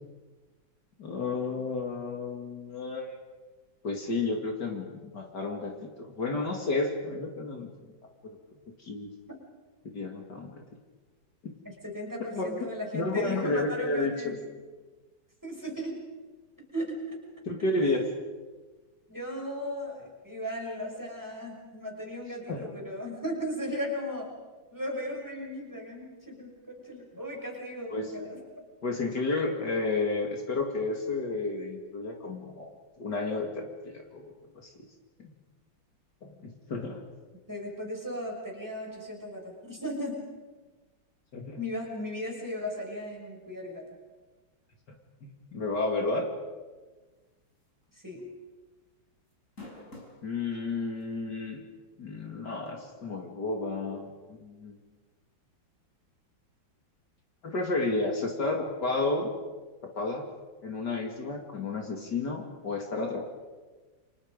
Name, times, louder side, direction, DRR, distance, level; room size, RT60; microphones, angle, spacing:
voice 1, 1.0-3.2 3.8-7.9 8.8-9.1 9.8-10.5 11.4-11.6 12.3-14.4 17.5-18.0 22.5-22.7 27.9-28.1 28.8-32.7 33.0-34.9 36.2-37.0 41.3-41.6 45.2-46.3 50.2-51.6 52.0-54.1 54.4-54.8 57.4-59.3 59.8-60.3 60.6-63.2, left 3 dB, 60° left, 2 dB, 3.0 m, -31 dB
voice 2, 11.6-14.5 15.4-15.9 16.7-17.2 17.8-18.1 19.1-24.3 24.7-28.4 37.5-40.2 41.6-43.9 47.9-48.2, equal, 10° right, -1 dB, 6.2 m, -36 dB
sound 1, 47.6-47.8 48.2-48.3 49.3-50.2 51.0-51.1 52.7-52.8, left 2 dB, 40° left, 5.7 m, -46 dB
30.0 x 25.5 x 5.3 m, 1.3 s
omnidirectional pair, 2.1 m